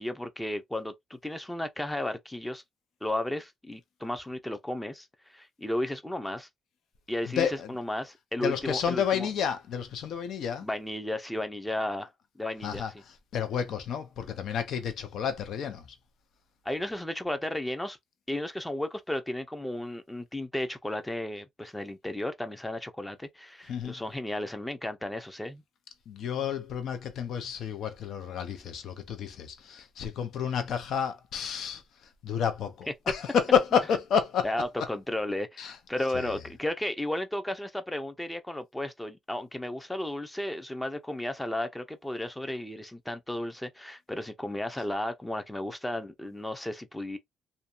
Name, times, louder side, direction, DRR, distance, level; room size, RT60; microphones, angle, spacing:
voice 1, 0.0-2.6 3.0-6.5 7.1-9.3 10.6-12.1 12.4-13.0 16.6-18.0 18.3-25.6 34.4-47.2, left 1 dB, 10° left, 0.5 m, -34 dB
voice 2, 7.2-7.7 8.4-10.7 12.6-12.9 13.3-15.8 23.7-23.9 26.1-31.8 32.2-34.5 35.6-35.8 36.1-36.3, left 7 dB, 70° left, 0.6 m, -30 dB
2.7 x 2.2 x 2.3 m
cardioid pair, 90°, 0 cm